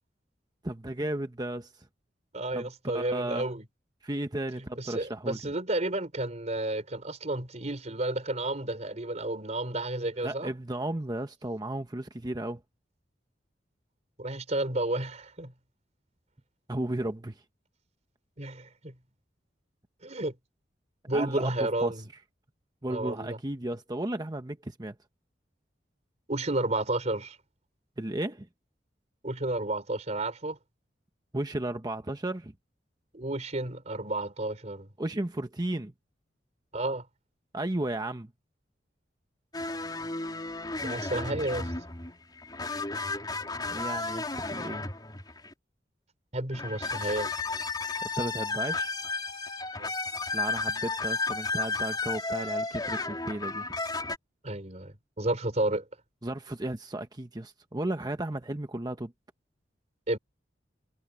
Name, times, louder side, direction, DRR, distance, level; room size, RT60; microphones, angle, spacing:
voice 1, 0.6-1.9 2.5-2.7 2.9-3.5 4.0-5.4 10.2-12.6 16.7-17.4 21.1-21.9 22.8-25.0 28.0-28.5 31.3-32.5 35.0-35.9 37.5-38.3 43.6-44.8 48.0-48.9 50.3-53.7 56.2-59.1, right 1 dB, 20° right, 1.0 m, -34 dB
voice 2, 2.3-3.6 4.8-10.5 14.2-15.5 18.4-18.9 20.0-20.3 21.1-22.1 22.9-23.4 26.3-27.4 29.2-30.6 33.1-34.9 36.7-37.0 40.8-41.7 46.3-47.3 49.8-49.9 54.4-55.9 60.1-60.2, right 2 dB, 40° right, 3.9 m, -31 dB
sound 1, 39.5-45.5 46.5-54.2, left 3 dB, 25° left, 3.8 m, -33 dB
head